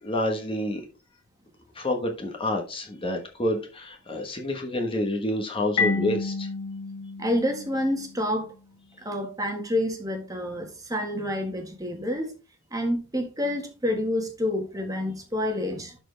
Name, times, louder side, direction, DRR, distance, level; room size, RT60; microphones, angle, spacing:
voice 1, 0.0-0.8 1.7-6.5, left 1 dB, 25° left, 1.2 m, -28 dB
Marimba xylophone, 5.8-8.4, left 4 dB, 85° left, 1.2 m, -30 dB
voice 2, 7.2-8.5 9.0-12.3 12.7-16.0, left 1 dB, 15° right, 1.5 m, -28 dB
12.0 x 4.4 x 3.3 m
head